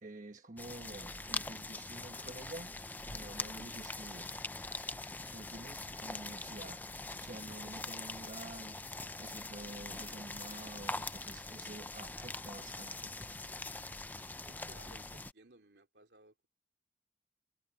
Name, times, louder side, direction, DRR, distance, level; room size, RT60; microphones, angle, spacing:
voice 1, 0.0-2.8 3.1-4.5 5.2-6.8 7.2-8.8 9.2-13.1, right 2 dB, 45° right, 1.2 m, -49 dB
sound 1, 0.6-15.3, left 2 dB, 10° left, 0.5 m, -43 dB
voice 2, 5.9-6.8 14.4-16.5, right 2 dB, 75° right, 2.8 m, -61 dB
head